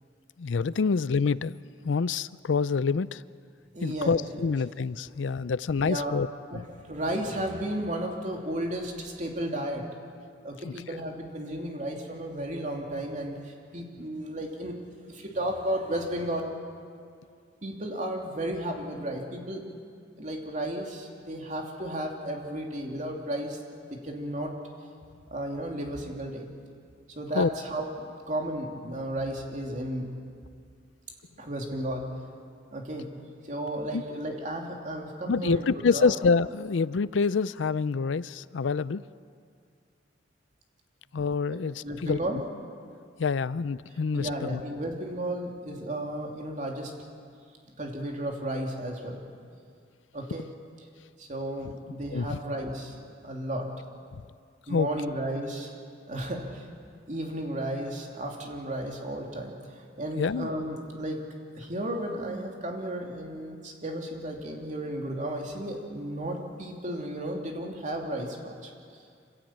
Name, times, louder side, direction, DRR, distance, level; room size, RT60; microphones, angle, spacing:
voice 1, 0.4-1.6 1.8-3.2 3.8-6.3 10.6-10.7 27.3-27.5 33.9-34.0 35.3-39.0 41.1-42.2 43.2-44.6 52.1-52.4 54.7-54.9 60.2-60.5, left 5 dB, 85° left, 18 dB, 0.5 m, -26 dB
voice 2, 3.7-4.5 5.8-6.2 6.5-9.8 10.4-14.8 15.1-16.4 17.6-19.6 20.2-23.6 23.9-24.5 25.3-26.5 27.2-30.1 31.4-32.0 32.7-33.1 33.4-36.2 41.5-42.4 44.1-46.9 47.8-49.2 50.1-50.5 51.2-53.0 53.2-53.7 54.7-55.7 56.1-56.7 57.1-61.2 61.5-68.7, right 1 dB, 40° right, 1 dB, 2.9 m, -33 dB
26.0 x 16.0 x 8.8 m, 2.2 s
head